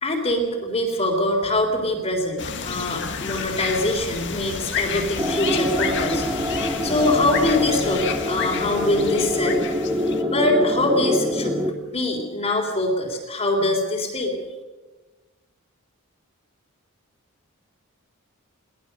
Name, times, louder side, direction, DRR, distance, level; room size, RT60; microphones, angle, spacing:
voice 1, 0.0-6.2 6.8-9.6 10.2-14.4, left 1 dB, 30° left, -1 dB, 3.5 m, -23 dB
sound 1, 2.4-10.2, left 6 dB, 55° left, 1.7 m, -30 dB
sound 2, 5.2-11.7, left 1 dB, 10° right, 1.9 m, -25 dB
23.0 x 18.5 x 6.6 m, 1.3 s
head